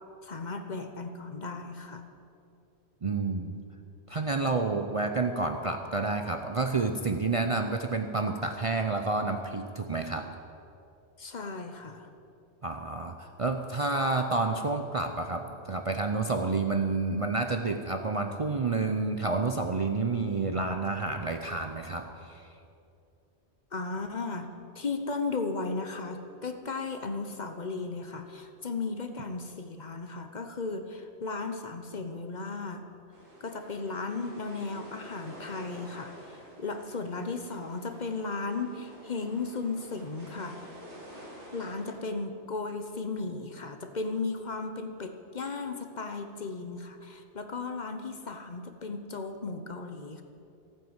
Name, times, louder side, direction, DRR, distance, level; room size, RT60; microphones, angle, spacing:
voice 1, 0.2-2.1 11.2-12.1 23.7-32.9 33.4-40.8 41.5-50.2, left 3 dB, 45° left, 7 dB, 1.0 m, -35 dB
voice 2, 3.0-3.6 4.1-10.3 12.6-22.5, right 3 dB, 35° right, 5 dB, 0.6 m, -29 dB
sound 1, 33.1-42.0, equal, 85° right, 2.9 m, -49 dB
15.0 x 9.3 x 8.0 m, 2.6 s
omnidirectional pair, 1.2 m